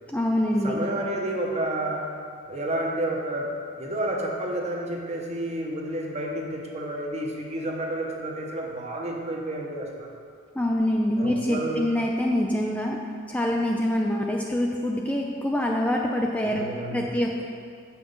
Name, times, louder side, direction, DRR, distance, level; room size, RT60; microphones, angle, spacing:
voice 1, 0.1-0.8 10.5-13.0 13.3-17.4, left 1 dB, 5° left, 0 dB, 0.4 m, -25 dB
voice 2, 0.6-2.1 2.5-10.1 11.2-11.9 16.4-17.1, right 1 dB, 35° right, 0 dB, 1.0 m, -30 dB
7.4 x 5.9 x 5.4 m, 2.2 s
head